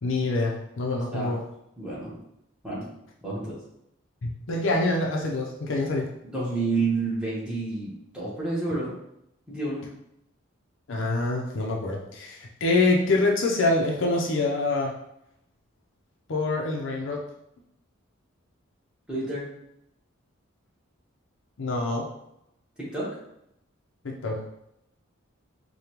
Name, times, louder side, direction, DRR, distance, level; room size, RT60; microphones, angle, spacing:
voice 1, 0.0-1.4 4.2-6.1 10.9-14.9 16.3-17.2 21.6-22.1 24.0-24.4, left 2 dB, 65° left, -1 dB, 0.6 m, -25 dB
voice 2, 1.8-2.2 2.6-2.8 3.2-3.5 6.2-8.9 9.5-9.8 19.1-19.4 22.8-23.1, right 3 dB, 5° right, -7 dB, 1.1 m, -29 dB
5.0 x 2.2 x 2.9 m, 0.81 s
head